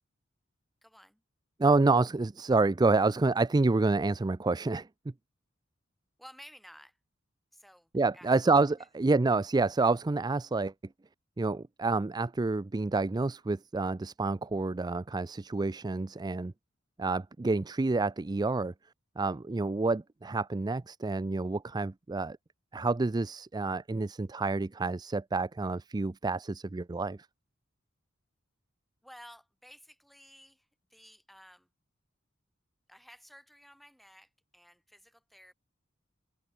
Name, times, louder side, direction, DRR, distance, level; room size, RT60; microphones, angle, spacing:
voice 1, 0.8-1.2 6.2-7.0 7.5-8.3 8.8-8.9 29.0-31.7 32.9-35.5, equal, ahead, 3.6 m, -54 dB
voice 2, 1.6-4.9 7.9-10.7 11.4-16.5 17.0-18.7 19.2-22.4 22.7-27.2, right 3 dB, 20° right, 0.4 m, -28 dB
head